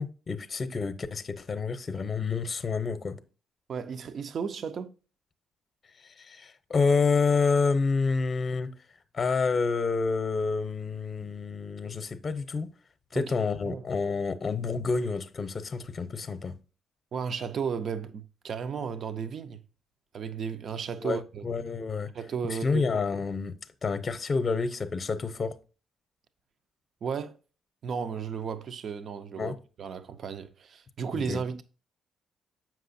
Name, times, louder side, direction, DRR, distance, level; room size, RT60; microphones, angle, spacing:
voice 1, 0.0-3.2 6.0-8.7 9.1-12.7 13.1-16.5 21.0-22.1 22.4-23.5 23.8-25.5 29.4-29.6 31.1-31.4, left 4 dB, 35° left, 0.7 m, -28 dB
voice 2, 3.7-4.9 13.1-13.3 13.6-13.8 17.1-19.6 20.1-21.5 22.1-23.0 27.0-27.4 27.8-31.6, right 6 dB, 55° right, 0.5 m, -34 dB
7.7 x 6.0 x 2.6 m
cardioid pair, 90°, 0 cm